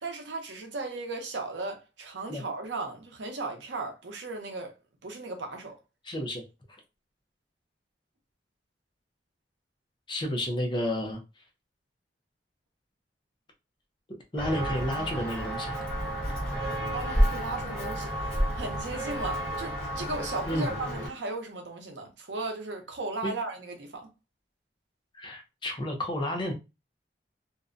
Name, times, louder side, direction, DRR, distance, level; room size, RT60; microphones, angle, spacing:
voice 1, 0.0-4.8 5.0-5.8 16.9-24.1, right 3 dB, 85° right, 0.6 m, -36 dB
voice 2, 6.0-6.4 10.1-11.2 14.3-15.7 20.5-20.7 23.2-23.3 25.1-26.5, left 1 dB, 25° left, 0.5 m, -31 dB
Walk footsteps, 14.4-21.1, equal, 5° left, 1.0 m, -30 dB
2.6 x 2.1 x 2.4 m
head